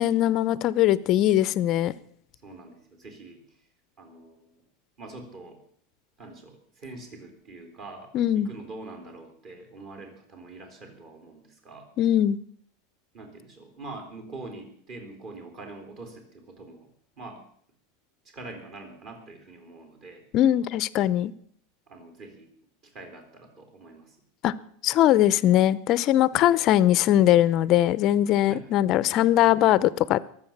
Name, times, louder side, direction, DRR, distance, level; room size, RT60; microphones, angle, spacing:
voice 1, 0.0-1.9 8.1-8.5 12.0-12.4 20.3-21.3 24.4-24.5 24.8-30.2, left 12 dB, 35° left, 18 dB, 0.6 m, -21 dB
voice 2, 2.4-3.6 4.0-4.5 5.0-5.6 6.2-11.9 13.1-16.9 17.2-17.4 18.3-20.2 21.9-22.5 22.8-24.2 26.3-26.5 28.5-28.7, right 2 dB, 35° right, 5 dB, 3.7 m, -44 dB
22.5 x 7.9 x 7.3 m, 0.63 s
supercardioid pair, 170°, 0 cm